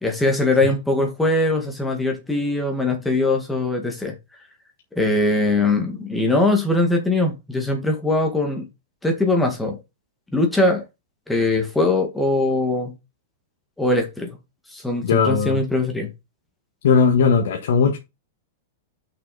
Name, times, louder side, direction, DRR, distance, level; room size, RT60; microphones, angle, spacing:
voice 1, 0.0-4.2 5.0-8.6 9.0-9.8 10.3-10.8 11.3-12.9 13.8-14.4 14.7-16.1, left 2 dB, 5° left, 1.7 m, -21 dB
voice 2, 15.0-15.6 16.8-18.0, left 6 dB, 70° left, 1.6 m, -18 dB
6.2 x 6.1 x 4.2 m
supercardioid pair, 170°, 0 cm